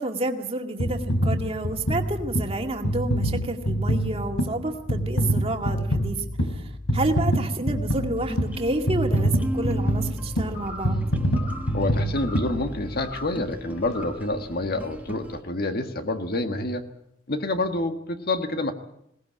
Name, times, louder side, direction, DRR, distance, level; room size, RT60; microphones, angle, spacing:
voice 1, 0.0-6.2 6.6-11.0, right 2 dB, 30° right, 4 dB, 2.1 m, -29 dB
sound 1, 0.8-13.2 13.8-13.9, equal, 80° left, 3.5 m, -26 dB
sound 2, 8.2-15.4, equal, 10° right, 1.5 m, -38 dB
sound 3, 10.5-11.0 11.3-11.8 12.1-12.5 13.0-13.4 13.8-14.3, left 3 dB, 25° left, 3.8 m, -40 dB
voice 2, 11.7-16.8 17.3-18.7, left 2 dB, 50° left, 7 dB, 1.6 m, -27 dB
21.0 x 18.0 x 8.7 m, 0.78 s
head